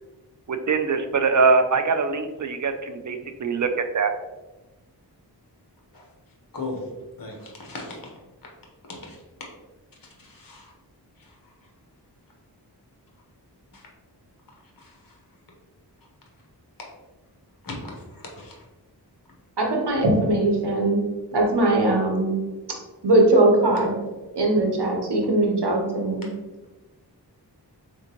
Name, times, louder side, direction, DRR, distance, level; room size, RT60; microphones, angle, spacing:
voice 1, 0.5-4.1, right 4 dB, 45° right, 8 dB, 0.4 m, -23 dB
voice 2, 7.2-8.0 9.1-9.2 10.4-10.6 17.6-17.7 18.4-18.5, left 3 dB, 55° left, -1 dB, 1.0 m, -35 dB
voice 3, 19.6-21.0 21.3-22.4 23.0-24.0 24.3-26.3, right 2 dB, 70° right, 0 dB, 1.0 m, -20 dB
3.6 x 3.6 x 2.9 m, 1.1 s
wide cardioid pair, 55°, 41 cm